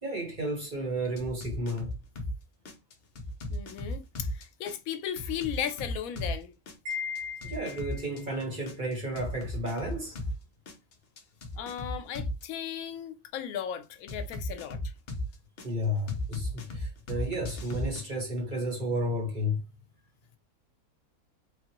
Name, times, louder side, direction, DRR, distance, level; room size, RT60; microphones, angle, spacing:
voice 1, 0.0-1.9 7.4-10.2 15.6-19.6, equal, 35° right, 1.3 m, -32 dB
sound 1, 1.2-2.3 2.6-6.4 6.7-10.3 10.7-12.4 14.1-15.7 16.1-18.0, left 1 dB, 55° left, 0.8 m, -35 dB
voice 2, 3.5-6.5 11.6-14.8, left 9 dB, 80° left, 1.0 m, -36 dB
Wind chime, 6.9-8.2, left 6 dB, 75° right, 1.4 m, -37 dB
3.4 x 2.4 x 2.9 m
omnidirectional pair, 1.5 m